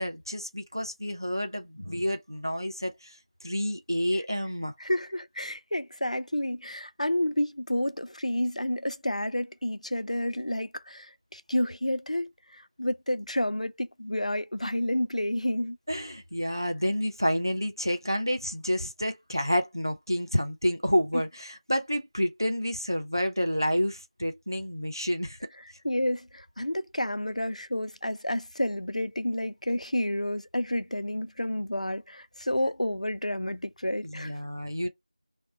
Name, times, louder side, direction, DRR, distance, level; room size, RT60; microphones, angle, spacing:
voice 1, 0.0-3.2 3.4-4.7 15.9-25.4 34.0-34.9, equal, 30° right, 0.4 m, -29 dB
voice 2, 4.8-15.8 25.8-34.3, left 1 dB, 65° left, 0.3 m, -30 dB
2.1 x 2.1 x 3.5 m
figure-of-eight pair, 180°, 4 cm